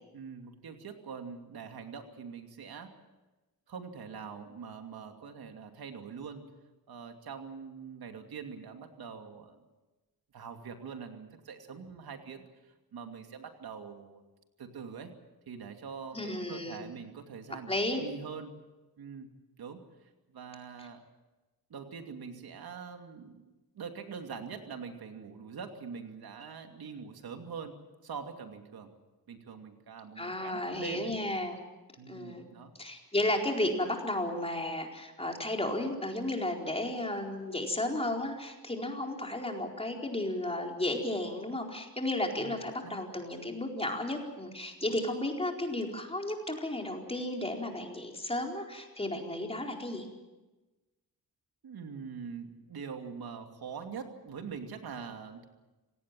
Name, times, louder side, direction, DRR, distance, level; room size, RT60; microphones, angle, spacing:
voice 1, 0.1-2.9 3.7-6.5 6.9-9.6 10.3-14.2 14.6-15.1 15.5-18.5 19.0-19.3 19.6-21.0 21.7-23.5 23.7-27.7 28.0-28.9 29.3-31.1 32.0-32.7 42.4-42.6 42.8-43.0 51.6-55.5, right 6 dB, 80° right, 5 dB, 2.7 m, -44 dB
voice 2, 16.1-16.8 17.7-18.0 30.2-31.6 32.1-32.5 32.8-50.1, left 1 dB, 15° left, 1 dB, 4.4 m, -33 dB
27.0 x 18.5 x 7.6 m, 1.1 s
wide cardioid pair, 105°, 36 cm